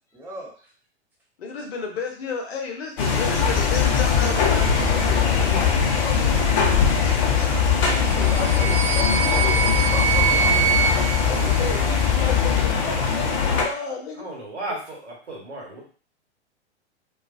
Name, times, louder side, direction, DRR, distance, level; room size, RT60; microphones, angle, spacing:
voice 1, 0.1-0.5 4.6-4.7 6.6-8.7 9.1-10.6, left 1 dB, 5° right, -5 dB, 0.8 m, -37 dB
voice 2, 1.4-6.3 8.0-9.5 11.2-14.4, left 4 dB, 60° left, 2 dB, 0.8 m, -33 dB
sound 1, 3.0-13.6, left 5 dB, 30° left, 0.5 m, -22 dB
sound 2, 3.4-12.7, left 10 dB, 10° left, 1.1 m, -24 dB
sound 3, 7.9-12.2, right 7 dB, 25° right, 1.1 m, -25 dB
voice 3, 14.2-15.8, right 2 dB, 70° right, -3 dB, 1.3 m, -34 dB
2.3 x 2.2 x 2.5 m, 0.41 s
figure-of-eight pair, 105°, 35 cm